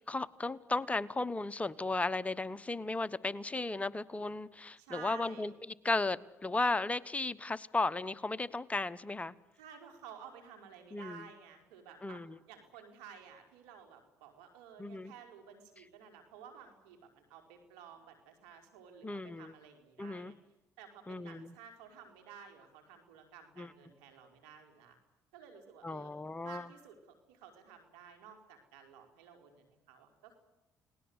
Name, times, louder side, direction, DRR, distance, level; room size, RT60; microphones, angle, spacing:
voice 1, 0.1-5.5 5.8-9.3 10.9-11.2 12.0-12.4 14.8-15.1 19.0-19.5 20.0-20.3 21.1-21.5 23.6-23.7 25.8-26.6, left 2 dB, 20° left, 15 dB, 1.1 m, -35 dB
voice 2, 4.8-5.5 9.6-20.4 20.8-25.0 25.3-26.1 26.4-30.3, right 7 dB, 90° right, 5 dB, 4.7 m, -53 dB
30.0 x 19.0 x 8.2 m, 0.93 s
supercardioid pair, 70°, 7 cm